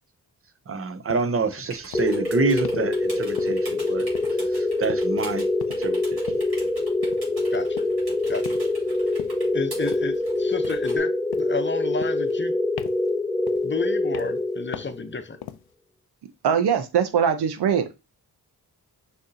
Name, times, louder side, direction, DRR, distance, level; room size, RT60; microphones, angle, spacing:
voice 1, 0.7-4.1 4.5-5.4 5.8-6.2, right 4 dB, 35° right, 0.6 m, -27 dB
sound 1, 1.1-1.3 1.9-2.2 2.6-2.9 3.4-3.8 4.2-4.6 4.9-5.2 5.6-5.9 6.3-6.6 7.0-7.3 7.8-8.1 8.5-8.8 9.2-9.5 9.9-10.2 10.6-11.0 11.3-11.6 12.0-12.5 12.8-13.1 13.5-13.8 14.1-14.5 14.7-15.0 15.4-15.7, left 10 dB, 75° left, 0.5 m, -40 dB
sound 2, 1.7-11.0, right 1 dB, 70° right, 2.4 m, -44 dB
sound 3, 1.9-15.1, left 2 dB, 5° left, 0.3 m, -25 dB
voice 2, 9.5-12.6 13.6-15.4, left 4 dB, 30° left, 0.7 m, -31 dB
voice 3, 16.4-18.0, right 7 dB, 90° right, 0.7 m, -22 dB
6.3 x 2.8 x 2.7 m
cardioid pair, 70°, 38 cm